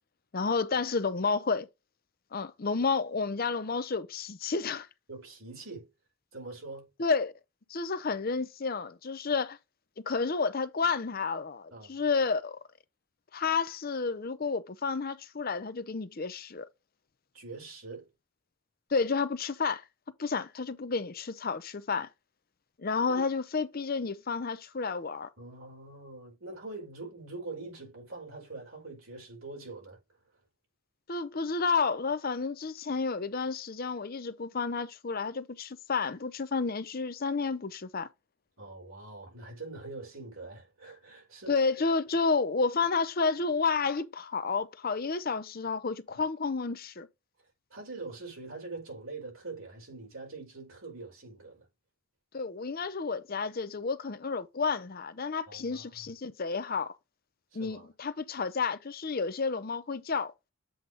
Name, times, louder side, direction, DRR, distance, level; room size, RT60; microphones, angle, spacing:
voice 1, 0.3-1.7 2.3-4.9 7.0-7.3 7.7-9.6 10.1-12.6 13.3-16.7 18.9-19.8 20.2-22.1 22.8-25.3 31.1-38.1 41.5-47.1 52.3-56.9 57.5-60.3, left 4 dB, 40° left, 0.6 m, -31 dB
voice 2, 5.1-5.9 6.3-6.9 11.7-12.0 17.3-18.1 23.1-23.2 25.4-30.0 38.6-41.6 46.1-46.2 47.7-51.7 55.5-56.1 57.5-57.9, right 3 dB, 70° right, 4.9 m, -44 dB
7.9 x 3.9 x 3.8 m
head